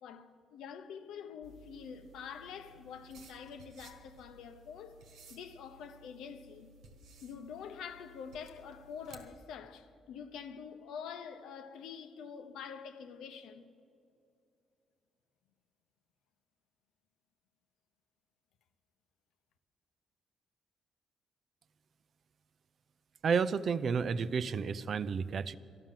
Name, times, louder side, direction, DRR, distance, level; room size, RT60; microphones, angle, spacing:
voice 1, 0.0-5.0 5.3-6.7 7.2-13.7, left 7 dB, 85° left, 0.8 m, -46 dB
sound 1, 1.4-9.3, right 3 dB, 85° right, 1.5 m, -58 dB
voice 2, 23.2-25.6, right 6 dB, 55° right, 0.5 m, -31 dB
12.5 x 11.5 x 7.5 m
cardioid pair, 90°, 0 cm